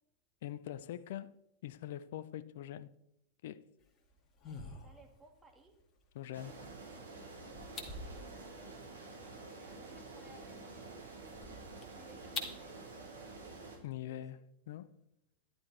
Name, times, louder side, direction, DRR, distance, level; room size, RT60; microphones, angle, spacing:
voice 1, 0.4-1.3 1.6-2.9 3.4-3.7 6.1-6.7 13.8-15.0, left 12 dB, 55° left, 0.6 m, -43 dB
sound 1, 3.8-12.6, left 3 dB, 30° left, 2.3 m, -49 dB
voice 2, 4.8-5.7 9.3-10.9 11.9-12.8 13.9-14.4, right 2 dB, 10° right, 2.6 m, -61 dB
sound 2, 6.3-13.8, right 3 dB, 80° right, 4.1 m, -49 dB
12.5 x 11.5 x 4.3 m
figure-of-eight pair, 90°, 0 cm